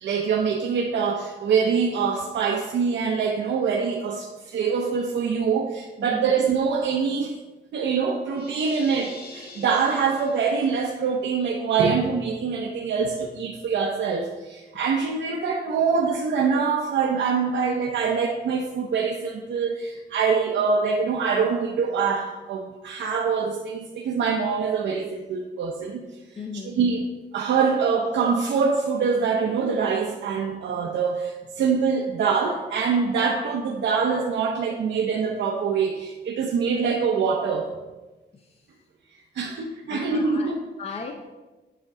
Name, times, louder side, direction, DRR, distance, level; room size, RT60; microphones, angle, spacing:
voice 1, 0.0-7.4 7.7-26.1 26.6-27.1 27.3-37.7 39.3-40.6, right 5 dB, 85° right, 0 dB, 0.7 m, -24 dB
voice 2, 6.0-6.3 14.7-14.8 26.4-26.8 38.3-38.7 39.9-41.3, left 4 dB, 35° left, 3 dB, 0.5 m, -37 dB
sound 1, 8.3-10.9, left 3 dB, 55° left, 1.5 m, -44 dB
7.9 x 3.6 x 6.0 m, 1.1 s
wide cardioid pair, 155°, 18 cm